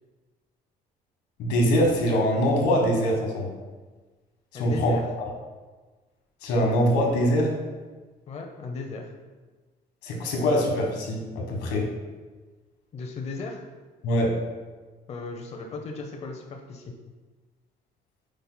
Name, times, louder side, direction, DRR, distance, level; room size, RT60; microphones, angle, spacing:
voice 1, 1.4-3.5 4.5-5.3 6.4-7.5 10.0-11.9 14.0-14.4, equal, 85° left, 0 dB, 1.4 m, -23 dB
voice 2, 4.5-5.0 8.3-9.1 12.9-13.6 15.1-16.9, left 3 dB, 40° left, 3 dB, 0.7 m, -36 dB
8.8 x 5.3 x 2.2 m, 1.3 s
cardioid pair, 110°, 17 cm